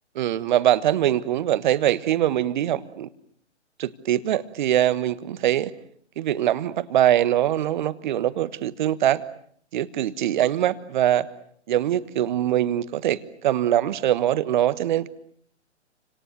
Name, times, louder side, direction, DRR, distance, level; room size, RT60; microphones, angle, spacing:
voice 1, 0.1-3.1 3.8-5.7 6.2-9.2 9.7-11.3 11.7-15.1, right 12 dB, 40° right, 16 dB, 1.3 m, -23 dB
30.0 x 26.5 x 6.7 m, 0.64 s
figure-of-eight pair, 125°, 36 cm